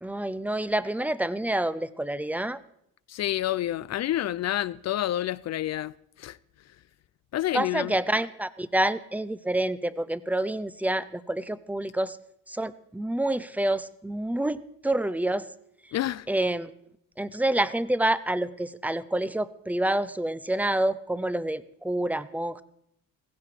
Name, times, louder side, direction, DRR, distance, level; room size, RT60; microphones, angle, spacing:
voice 1, 0.0-2.6 7.5-12.2 12.5-15.5 16.3-16.7 17.2-22.6, right 1 dB, 5° right, 0.7 m, -28 dB
voice 2, 3.1-6.4 7.3-8.0 15.9-16.3, left 13 dB, 45° left, 0.5 m, -29 dB
16.0 x 15.5 x 4.9 m
cardioid pair, 95°, 36 cm